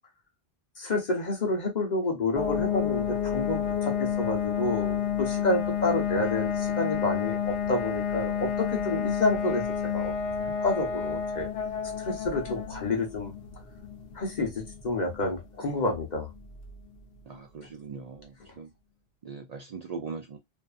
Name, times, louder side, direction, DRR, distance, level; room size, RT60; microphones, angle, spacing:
voice 1, 0.8-10.1 10.4-11.5 12.0-13.3 14.1-16.3, left 2 dB, 45° left, 1.0 m, -29 dB
sound 1, 2.4-16.9, left 7 dB, 75° left, 0.9 m, -30 dB
voice 2, 17.3-18.7 19.2-20.4, right 5 dB, 50° right, 0.5 m, -40 dB
2.5 x 2.5 x 2.3 m
omnidirectional pair, 1.1 m